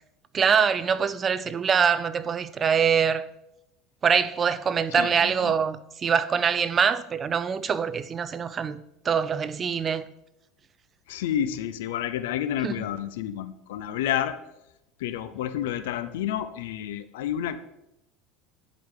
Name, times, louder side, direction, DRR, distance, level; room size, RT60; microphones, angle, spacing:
voice 1, 0.3-3.3 4.0-8.8 9.0-10.1 12.6-12.8, right 6 dB, 30° right, 0.4 m, -24 dB
voice 2, 5.0-5.6 11.1-14.4 15.0-17.6, left 10 dB, 85° left, 0.6 m, -30 dB
10.5 x 5.1 x 3.8 m
supercardioid pair, 120°, 0 cm